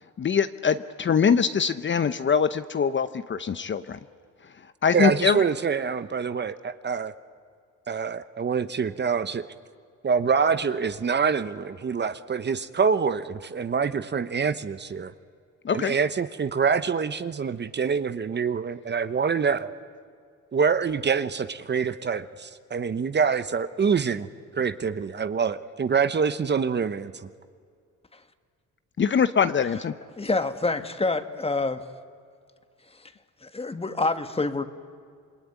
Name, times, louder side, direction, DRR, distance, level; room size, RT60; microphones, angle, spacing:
voice 1, 0.2-4.0 4.8-5.4 15.6-15.9 29.0-29.9, left 6 dB, 40° left, 12 dB, 0.8 m, -23 dB
voice 2, 4.9-7.1 7.9-9.4 10.0-15.1 15.7-19.7 20.5-24.3 24.5-27.1, right 6 dB, 35° right, 12 dB, 0.9 m, -25 dB
voice 3, 30.2-31.8 32.9-33.1 33.4-34.6, left 3 dB, 20° left, 9 dB, 1.6 m, -27 dB
27.5 x 21.5 x 9.7 m, 2.2 s
cardioid pair, 90°, 30 cm